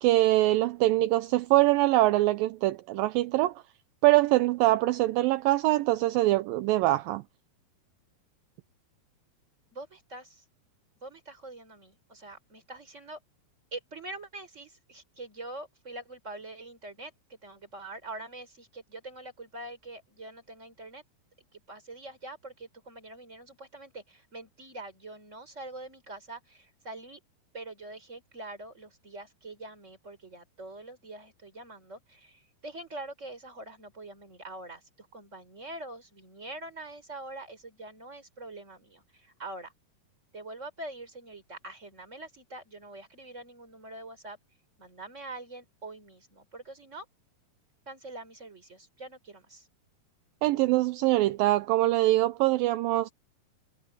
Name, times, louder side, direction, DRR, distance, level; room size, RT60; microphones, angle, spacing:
voice 1, 0.0-3.6 4.0-7.2 50.4-53.1, right 17 dB, 80° right, 2.1 m, -23 dB
voice 2, 9.7-10.4 11.0-13.2 13.7-21.0 21.4-27.2 27.5-39.7 40.3-44.4 44.8-47.0 47.9-49.7, right 2 dB, 15° right, 4.5 m, -44 dB
omnidirectional pair, 4.7 m